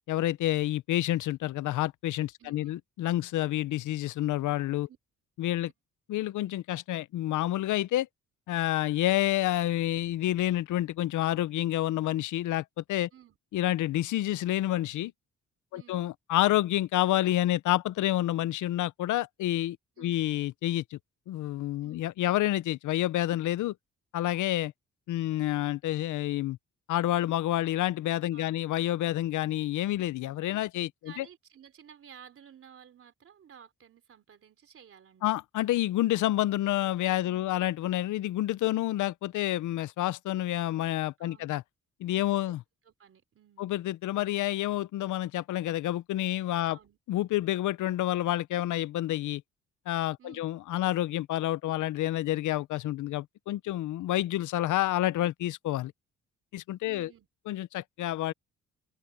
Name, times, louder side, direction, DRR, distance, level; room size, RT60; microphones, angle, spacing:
voice 1, 0.1-4.9 5.4-5.7 6.1-8.1 8.5-13.1 13.5-15.1 15.7-21.0 21.3-23.7 24.1-24.7 25.1-26.6 26.9-31.3 35.2-41.6 42.0-42.6 43.6-46.8 47.1-49.4 49.9-55.9 56.5-57.1 57.5-58.3, left 14 dB, 85° left, 0.6 m, -29 dB
voice 2, 2.4-2.8 4.9-5.0 13.1-13.4 15.7-16.0 20.0-20.2 21.8-22.0 28.3-28.7 31.0-35.4 37.2-37.5 41.2-41.5 42.1-42.6 42.9-43.7 46.6-47.0 50.2-50.5 56.8-57.3, right 8 dB, 50° right, 3.5 m, -54 dB
cardioid pair, 150°, 30 cm